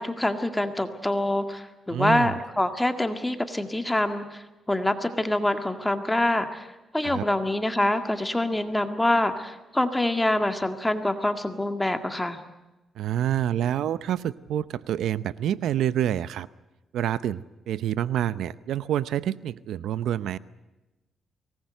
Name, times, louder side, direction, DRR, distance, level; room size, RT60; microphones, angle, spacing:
voice 1, 0.0-6.7 6.9-12.4, left 1 dB, 10° left, 7 dB, 1.9 m, -25 dB
voice 2, 1.9-2.3 7.0-7.3 13.0-16.5 16.9-20.4, right 11 dB, 85° right, 16 dB, 0.7 m, -27 dB
24.0 x 19.5 x 7.8 m, 1.1 s
cardioid pair, 105°, 0 cm